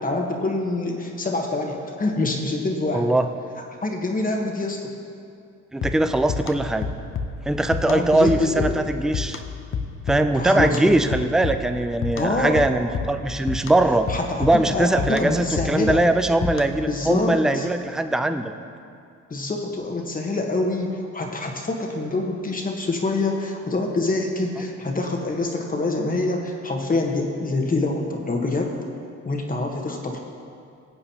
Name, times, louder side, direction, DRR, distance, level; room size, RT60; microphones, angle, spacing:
voice 1, 0.0-3.1 3.8-4.9 7.9-8.8 10.3-11.0 12.1-12.6 14.1-16.0 16.9-17.7 19.3-28.7 29.2-30.2, left 2 dB, 30° left, 1 dB, 1.2 m, -25 dB
voice 2, 2.9-3.3 5.7-6.9 7.5-9.4 10.1-14.1 14.4-18.5, right 2 dB, ahead, 8 dB, 0.4 m, -21 dB
sound 1, 5.8-16.9, left 5 dB, 45° left, 0.7 m, -31 dB
17.0 x 7.8 x 2.9 m, 2.4 s
cardioid pair, 90°, 30 cm